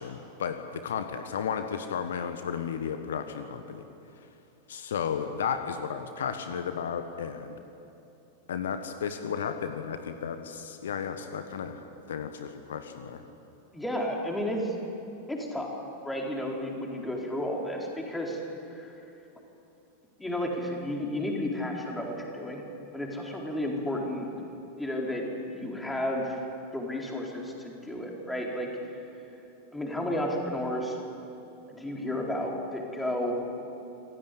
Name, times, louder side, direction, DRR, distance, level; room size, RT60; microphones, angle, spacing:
voice 1, 0.0-3.8 4.7-7.6 8.5-11.8 12.1-13.2, left 7 dB, 60° left, 8 dB, 1.3 m, -33 dB
voice 2, 13.7-14.7 15.3-15.8 16.0-18.4 18.7-18.9 20.2-22.7 22.9-24.3 24.8-25.3 25.5-26.4 26.7-28.7 29.7-31.0 31.7-33.4, left 1 dB, 5° left, -1 dB, 4.4 m, -32 dB
26.0 x 16.5 x 8.6 m, 2.8 s
figure-of-eight pair, 90°, 0 cm